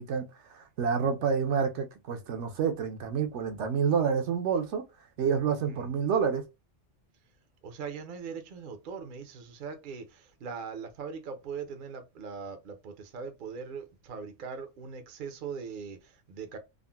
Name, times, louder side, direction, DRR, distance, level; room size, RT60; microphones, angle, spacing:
voice 1, 0.0-4.8 5.2-6.4, right 6 dB, 75° right, 0.9 m, -28 dB
voice 2, 5.5-5.9 7.6-16.6, right 5 dB, 55° right, 0.6 m, -41 dB
3.7 x 2.0 x 2.2 m
omnidirectional pair, 1.2 m